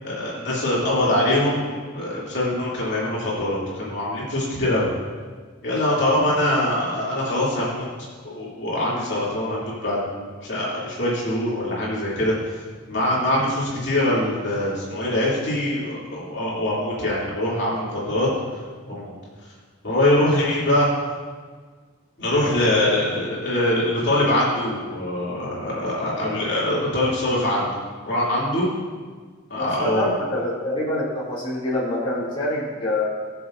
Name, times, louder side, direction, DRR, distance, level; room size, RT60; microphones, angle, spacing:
voice 1, 0.0-4.9 5.6-7.8 8.2-12.6 12.9-18.3 18.9-19.1 19.8-20.9 22.2-27.8 28.0-28.7 29.5-30.0, left 1 dB, 55° left, -7 dB, 2.9 m, -23 dB
voice 2, 29.6-33.0, left 1 dB, 25° left, -10 dB, 2.8 m, -26 dB
20.0 x 7.0 x 2.6 m, 1.6 s
head